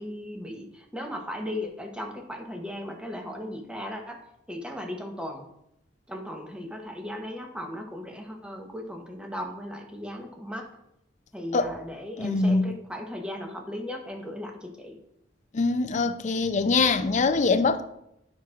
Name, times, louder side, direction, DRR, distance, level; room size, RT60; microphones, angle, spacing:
voice 1, 0.0-4.2 4.5-5.5 6.1-10.6 11.3-15.0, left 1 dB, 5° right, 1.0 m, -37 dB
voice 2, 12.2-12.7 15.5-17.8, left 3 dB, 40° left, 0.5 m, -23 dB
11.0 x 5.9 x 2.5 m
head